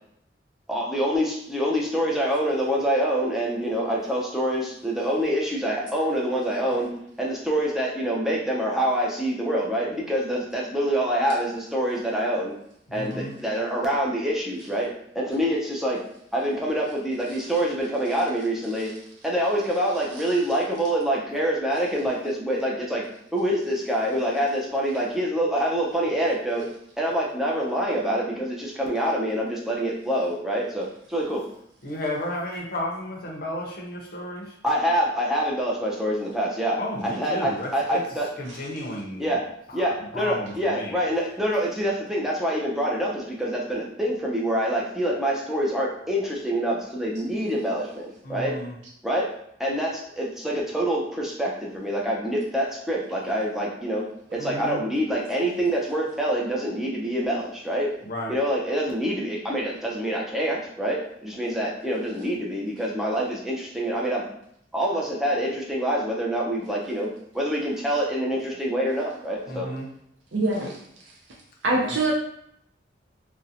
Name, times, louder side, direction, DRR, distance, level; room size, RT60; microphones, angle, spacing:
voice 1, 0.7-6.9 7.2-12.5 12.9-14.9 15.1-16.0 16.3-18.9 19.2-23.0 23.3-26.7 27.0-31.4 34.6-38.3 39.2-39.4 39.7-48.5 49.0-49.3 49.6-54.0 54.3-57.9 58.3-64.3 64.7-69.7 70.6-70.7, equal, ahead, -4 dB, 0.4 m, -26 dB
voice 2, 12.9-13.3 31.8-34.5 36.8-38.0 38.4-39.4 39.8-41.0 48.2-48.7 54.4-54.8 58.0-58.3 69.5-69.9 71.7-72.1, left 1 dB, 50° left, -2 dB, 0.6 m, -33 dB
voice 3, 70.3-70.8 71.6-72.1, right 2 dB, 65° right, -2 dB, 0.5 m, -23 dB
2.5 x 2.1 x 2.7 m, 0.72 s
head